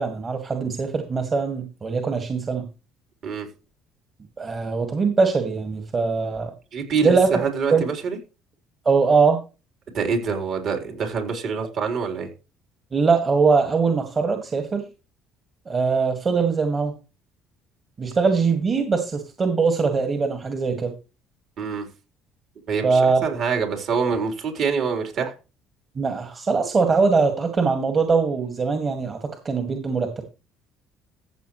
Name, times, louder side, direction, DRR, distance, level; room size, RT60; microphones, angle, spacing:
voice 1, 0.0-2.7 4.4-6.5 7.0-7.3 7.7-7.8 8.9-9.4 12.9-14.8 15.7-16.9 18.0-20.9 22.8-23.3 26.0-30.2, right 4 dB, 35° right, 5 dB, 2.0 m, -21 dB
voice 2, 6.7-8.2 9.9-12.3 21.6-21.9 22.7-25.3, right 5 dB, 60° right, 3 dB, 4.0 m, -25 dB
14.5 x 7.3 x 3.2 m, 0.31 s
supercardioid pair, 70°, 0 cm